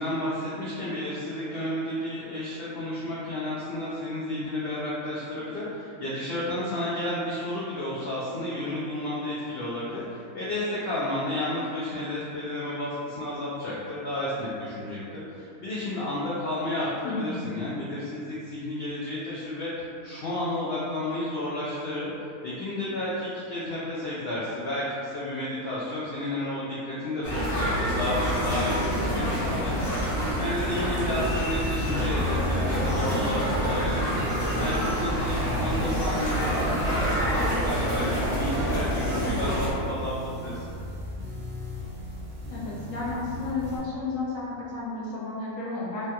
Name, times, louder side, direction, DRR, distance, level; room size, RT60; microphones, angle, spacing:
voice 1, 0.0-22.1 22.4-34.2 34.6-40.6, left 1 dB, 85° left, -7 dB, 0.5 m, -32 dB
voice 2, 17.0-17.5 33.2-33.6 42.5-46.1, left 3 dB, 70° left, -6 dB, 0.9 m, -32 dB
sound 1, 27.2-39.7, equal, 45° left, 1.0 m, -27 dB
sound 2, 31.0-43.8, left 1 dB, 60° right, 0.5 m, -38 dB
3.1 x 2.3 x 2.8 m, 2.5 s
omnidirectional pair, 1.6 m